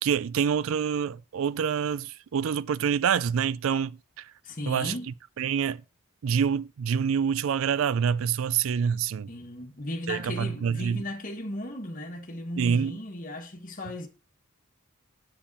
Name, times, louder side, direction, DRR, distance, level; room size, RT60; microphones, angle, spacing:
voice 1, 0.0-4.3 4.7-4.9 5.4-5.8 6.2-9.3 10.1-11.0 12.6-13.0, right 7 dB, 70° right, 0.4 m, -26 dB
voice 2, 4.4-5.1 9.3-14.1, left 1 dB, 40° left, 1.4 m, -36 dB
7.3 x 7.1 x 4.1 m
head